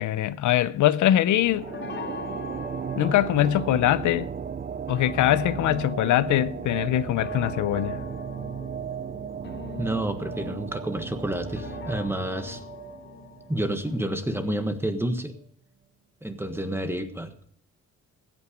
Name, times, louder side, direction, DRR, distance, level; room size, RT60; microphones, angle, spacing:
voice 1, 0.0-1.7 3.0-4.3 4.9-8.0, left 13 dB, 80° left, 0.6 m, -22 dB
sound 1, 1.0-15.1, left 7 dB, 40° left, 0.6 m, -43 dB
sound 2, 1.4-13.9, right 7 dB, 30° right, 0.6 m, -35 dB
voice 2, 9.8-12.6 13.5-15.3 16.2-17.3, right 1 dB, 10° right, 1.4 m, -29 dB
15.5 x 8.8 x 5.1 m
cardioid pair, 95°, 29 cm